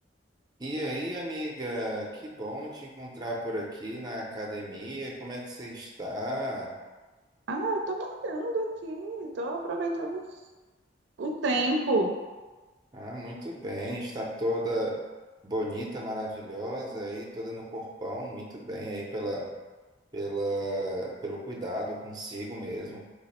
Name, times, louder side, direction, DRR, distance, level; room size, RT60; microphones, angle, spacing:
voice 1, 0.6-6.7 12.9-15.0 15.4-19.5 20.1-23.0, right 1 dB, 25° right, -2 dB, 0.5 m, -34 dB
voice 2, 7.5-10.2 11.2-12.2, right 2 dB, 80° right, 2 dB, 0.4 m, -29 dB
3.3 x 2.0 x 4.1 m, 1.2 s
head